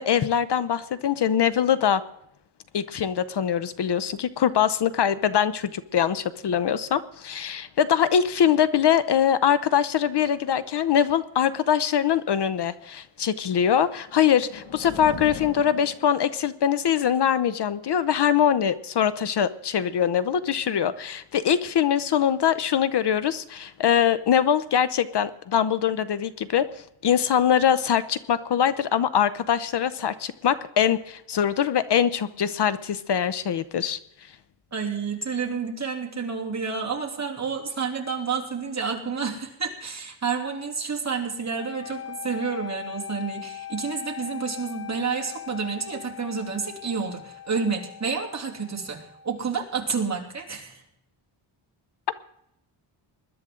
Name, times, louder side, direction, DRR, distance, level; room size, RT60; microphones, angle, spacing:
voice 1, 0.0-2.0 2.7-26.7 27.0-34.0, left 8 dB, 55° left, 15 dB, 0.7 m, -23 dB
sound 1, 13.9-16.6, left 6 dB, 85° left, 2.2 m, -40 dB
voice 2, 34.7-50.8, right 5 dB, 35° right, 1 dB, 3.0 m, -30 dB
sound 2, 41.5-49.6, left 10 dB, 30° left, 1.9 m, -40 dB
21.0 x 12.0 x 3.8 m, 0.77 s
wide cardioid pair, 125°, 48 cm